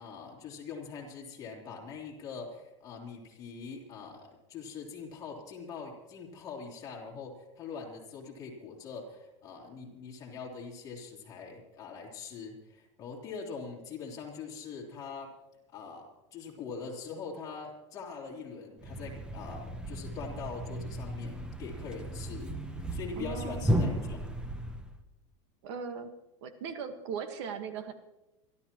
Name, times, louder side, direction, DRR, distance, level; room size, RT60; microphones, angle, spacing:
voice 1, 0.0-15.3 15.7-24.2, left 5 dB, 20° left, -2 dB, 3.3 m, -43 dB
Thump thud, 18.8-25.0, equal, 5° right, 0.8 m, -34 dB
voice 2, 23.2-23.7 25.6-26.1 26.4-27.9, right 6 dB, 65° right, 8 dB, 1.5 m, -38 dB
26.0 x 13.0 x 3.0 m, 0.99 s
supercardioid pair, 165°, 16 cm